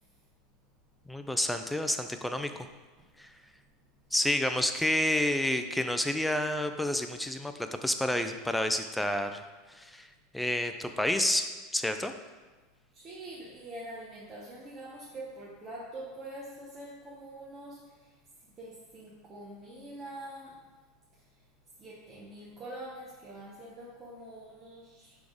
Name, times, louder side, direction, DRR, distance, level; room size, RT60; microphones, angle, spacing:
voice 1, 1.1-2.7 3.2-3.3 4.1-9.4 9.7-10.1 10.3-11.4 11.7-12.1, left 1 dB, 5° left, 7 dB, 0.4 m, -29 dB
voice 2, 12.9-18.1 18.6-20.6 21.8-25.1, right 1 dB, 25° right, -6 dB, 0.9 m, -45 dB
6.0 x 3.5 x 4.9 m, 1.3 s
supercardioid pair, 145°, 0 cm